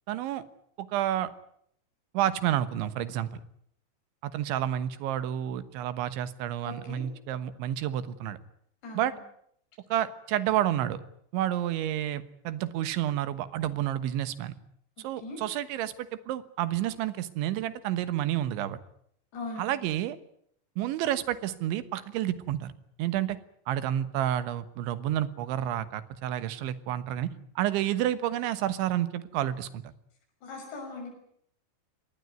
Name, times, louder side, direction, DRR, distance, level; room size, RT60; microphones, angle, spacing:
voice 1, 0.1-0.4 0.8-1.3 2.2-3.3 4.2-8.4 9.0-9.1 9.9-11.0 11.3-14.5 15.0-18.8 19.6-20.2 20.8-22.7 23.0-23.4 23.7-27.3 27.6-29.8, right 12 dB, 90° right, 13 dB, 3.7 m, -30 dB
voice 2, 6.6-7.0 8.8-9.2 15.2-15.4 19.3-19.7 30.4-31.1, left 3 dB, 70° left, 1 dB, 8.3 m, -39 dB
24.0 x 19.5 x 9.4 m, 0.69 s
omnidirectional pair, 5.2 m